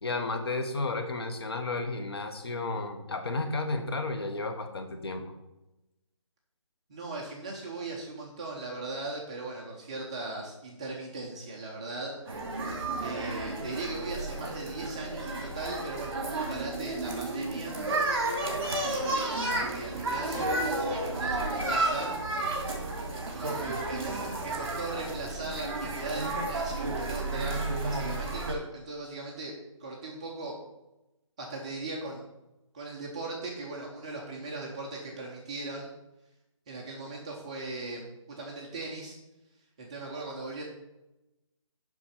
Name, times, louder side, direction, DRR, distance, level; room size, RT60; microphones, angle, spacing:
voice 1, 0.0-5.3, left 3 dB, 50° left, 6 dB, 1.3 m, -32 dB
voice 2, 6.9-12.1 13.0-17.8 18.7-22.1 23.3-29.5 29.8-30.5 31.4-32.2 32.7-35.9 36.7-39.2 39.8-40.6, right 2 dB, 10° right, -2 dB, 0.7 m, -39 dB
sound 1, 12.3-28.5, right 2 dB, 50° right, 2.4 m, -32 dB
7.4 x 5.8 x 5.8 m, 0.95 s
hypercardioid pair, 175°, 17 cm